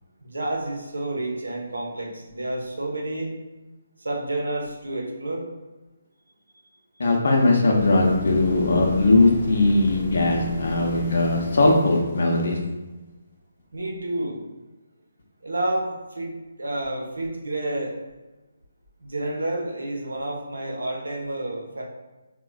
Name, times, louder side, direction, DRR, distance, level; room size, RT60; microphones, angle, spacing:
voice 1, 0.2-3.3 4.0-5.5 13.7-14.4 15.4-18.0 19.0-21.8, right 1 dB, 80° right, 0 dB, 0.7 m, -30 dB
voice 2, 7.0-12.6, left 2 dB, 60° left, 0 dB, 0.7 m, -19 dB
sound 1, 7.8-12.9 16.8-16.9, left 2 dB, 30° left, 0.9 m, -35 dB
3.8 x 2.2 x 2.2 m, 1.1 s
figure-of-eight pair, 145°, 0 cm